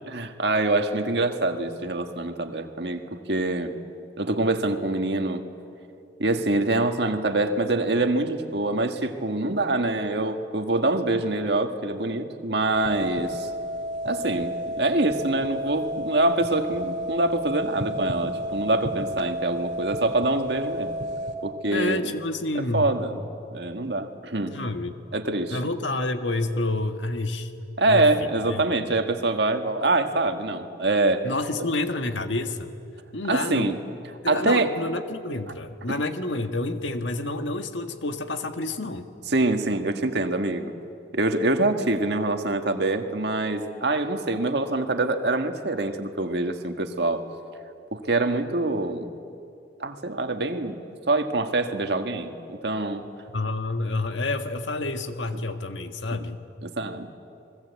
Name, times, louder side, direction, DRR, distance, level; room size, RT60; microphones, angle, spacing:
voice 1, 0.0-3.0 3.3-3.7 4.2-5.4 6.2-13.5 14.0-20.9 21.4-22.0 22.5-23.2 23.5-24.6 25.1-25.6 27.8-31.2 33.3-33.8 34.3-34.7 39.3-40.7 41.1-47.2 47.9-49.1 49.8-50.8 51.0-53.0 56.6-57.1, right 2 dB, 65° right, 6 dB, 1.7 m, -25 dB
sound 1, 12.8-21.3, equal, 40° right, 2.5 m, -31 dB
voice 2, 21.7-22.9 24.5-24.9 25.5-27.5 27.8-28.0 28.4-28.6 31.2-32.7 33.1-33.8 34.2-39.1 53.3-56.4, left 2 dB, 85° left, 7 dB, 1.6 m, -29 dB
29.5 x 21.0 x 8.3 m, 2.6 s
head